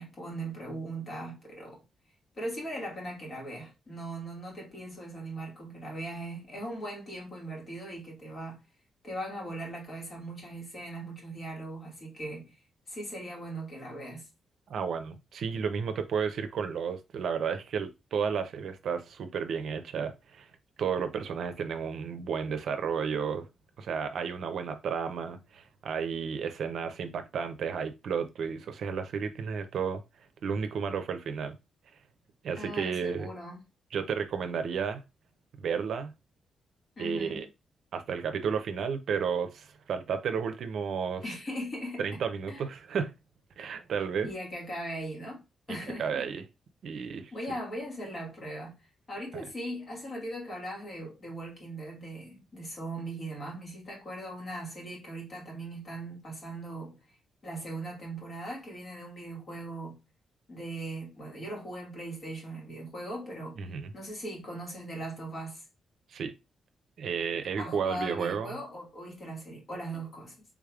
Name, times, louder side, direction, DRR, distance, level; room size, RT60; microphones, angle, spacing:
voice 1, 0.0-1.8 2.4-8.6 9.0-12.5 12.9-14.3 32.6-33.6 37.0-37.5 41.2-42.2 42.5-42.6 44.2-45.4 45.7-46.3 47.3-48.8 49.1-57.0 57.4-60.0 60.5-63.6 63.9-65.6 67.6-70.4, right 1 dB, 45° left, 1.9 m, -39 dB
voice 2, 14.7-20.5 20.8-23.5 23.8-30.0 30.4-31.6 32.4-33.3 33.9-35.0 35.6-36.1 37.0-37.5 37.9-41.2 42.0-43.1 43.6-44.3 46.0-46.5 46.8-47.3 63.6-63.9 66.1-66.3 67.0-68.6, right 6 dB, 75° right, 0.5 m, -32 dB
3.5 x 3.4 x 2.3 m
cardioid pair, 80°, 0 cm